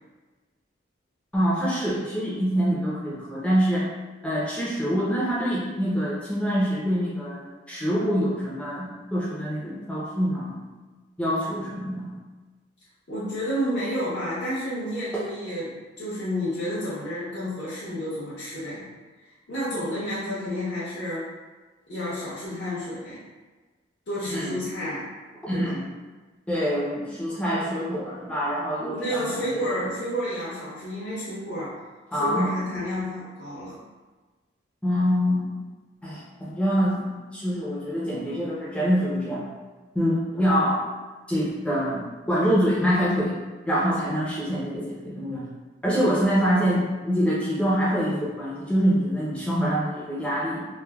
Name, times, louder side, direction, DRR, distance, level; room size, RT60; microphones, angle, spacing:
voice 1, 1.3-3.9 4.2-10.5 11.2-12.1 15.1-15.2 24.2-24.6 25.4-25.8 26.5-29.8 32.1-32.5 34.8-35.5 36.0-39.4 39.9-40.8 41.3-43.4 43.7-45.4 45.8-50.7, equal, 5° left, -7 dB, 0.5 m, -25 dB
voice 2, 13.1-18.9 19.5-21.3 21.9-23.2 24.1-25.1 25.5-25.7 28.9-31.8 32.1-33.8, equal, 70° left, -10 dB, 0.7 m, -30 dB
3.2 x 2.1 x 2.2 m, 1.3 s
head